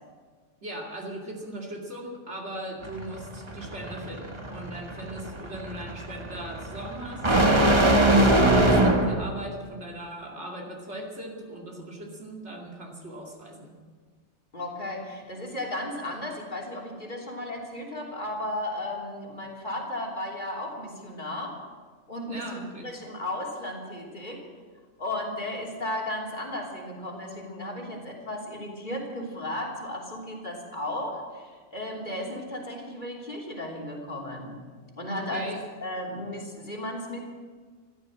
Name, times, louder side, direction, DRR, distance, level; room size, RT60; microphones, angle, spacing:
voice 1, 0.6-7.3 8.0-13.8 22.3-22.9 35.1-35.6, right 1 dB, 70° right, -2 dB, 2.7 m, -39 dB
sound 1, 2.8-9.3, right 1 dB, 25° right, 1.5 m, -22 dB
voice 2, 14.5-21.5 22.1-24.4 25.0-34.5 34.9-35.5 35.8-37.2, left 1 dB, 40° left, 0 dB, 3.3 m, -35 dB
15.0 x 12.5 x 7.6 m, 1.5 s
omnidirectional pair, 1.2 m